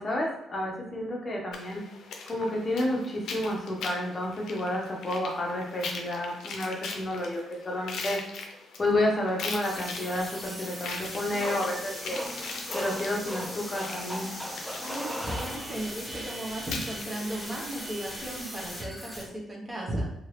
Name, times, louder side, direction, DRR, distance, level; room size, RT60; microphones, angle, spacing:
voice 1, 0.0-1.8 2.3-8.2 8.8-12.2 12.7-14.3, left 1 dB, 30° left, -1 dB, 0.7 m, -30 dB
sound 1, 1.5-18.3, left 4 dB, 75° left, 0.5 m, -41 dB
sound 2, 9.6-19.2, equal, 15° left, 1.1 m, -40 dB
sound 3, 11.3-16.1, equal, ahead, 0.4 m, -38 dB
voice 2, 14.8-20.1, right 1 dB, 25° right, -2 dB, 1.0 m, -35 dB
2.8 x 2.7 x 3.2 m, 0.85 s
cardioid pair, 90°, 0 cm